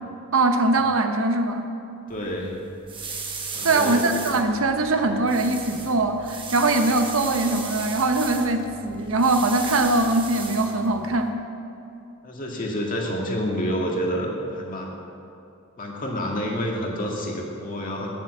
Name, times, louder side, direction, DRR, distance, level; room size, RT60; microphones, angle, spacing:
voice 1, 0.3-1.7 3.6-11.4, right 2 dB, 70° right, 6 dB, 1.0 m, -22 dB
voice 2, 2.1-2.5 3.5-4.0 12.2-15.0 15.8-18.1, equal, 40° left, -1 dB, 1.9 m, -28 dB
sound 1, 2.1-11.3, right 4 dB, 25° right, 1.0 m, -36 dB
10.0 x 7.3 x 7.4 m, 2.7 s
head